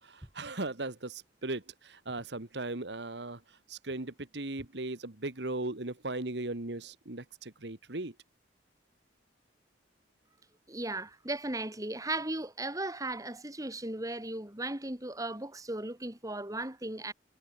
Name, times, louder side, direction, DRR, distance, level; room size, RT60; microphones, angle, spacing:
voice 1, 0.0-8.2, right 2 dB, 70° right, 1.9 m, -38 dB
voice 2, 10.7-17.1, right 2 dB, 20° right, 2.6 m, -36 dB
head